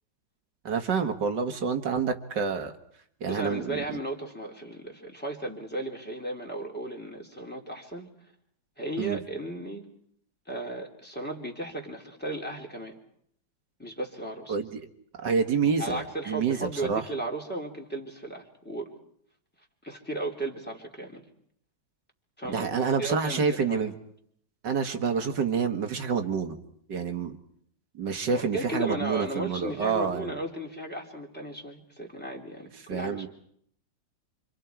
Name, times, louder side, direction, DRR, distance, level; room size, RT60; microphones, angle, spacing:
voice 1, 0.6-2.7 3.2-4.0 9.0-9.2 14.5-14.8 15.2-17.0 22.5-23.9 24.6-26.6 26.9-27.4 28.0-30.3 32.9-33.3, right 5 dB, 65° right, 6 dB, 2.3 m, -28 dB
voice 2, 3.3-8.1 8.8-9.9 10.5-13.0 13.8-14.6 15.8-18.9 19.8-21.2 22.4-23.9 28.3-33.3, right 1 dB, 5° left, 0 dB, 3.2 m, -35 dB
29.0 x 26.5 x 4.6 m, 0.67 s
omnidirectional pair, 2.0 m